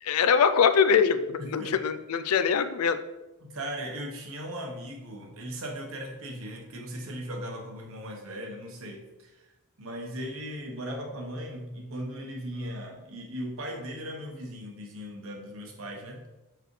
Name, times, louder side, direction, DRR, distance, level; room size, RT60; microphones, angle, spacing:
voice 1, 0.0-3.0, left 6 dB, 85° left, 11 dB, 0.4 m, -23 dB
voice 2, 1.4-1.8 3.4-9.4 9.8-16.2, equal, 65° right, 1 dB, 1.1 m, -38 dB
6.3 x 4.8 x 3.2 m, 1.0 s
head